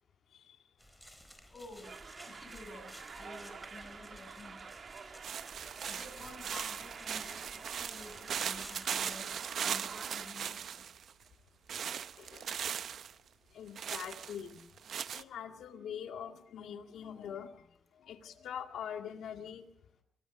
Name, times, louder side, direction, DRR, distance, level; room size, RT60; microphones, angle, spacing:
sound 1, 0.8-9.2, equal, ahead, 4.2 m, -54 dB
voice 1, 1.5-1.9 2.2-4.7 5.9-10.8, left 2 dB, 35° left, 4 dB, 7.5 m, -51 dB
sound 2, 1.8-10.3, right 5 dB, 50° right, 1.5 m, -49 dB
sound 3, 5.2-11.1 11.7-13.1 13.8-15.2, right 8 dB, 70° right, 0.8 m, -39 dB
voice 2, 12.2-12.6 13.5-14.6 15.1-17.7 18.0-19.6, left 8 dB, 85° left, 6 dB, 2.1 m, -44 dB
23.5 x 18.5 x 6.2 m, 0.72 s
cardioid pair, 90°, 0 cm